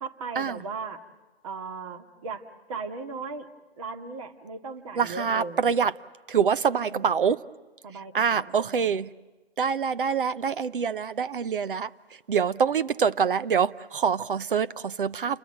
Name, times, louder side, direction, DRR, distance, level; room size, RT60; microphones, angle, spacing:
voice 1, 0.0-1.0 1.4-2.4 2.7-3.5 3.8-5.7 6.7-7.1 7.8-8.9, right 4 dB, 35° right, 2.0 m, -37 dB
voice 2, 5.0-5.9 6.3-7.4 8.1-9.1 9.6-11.9 12.3-15.4, right 6 dB, 55° right, 0.8 m, -25 dB
29.0 x 22.5 x 7.9 m
hypercardioid pair, 155°, 32 cm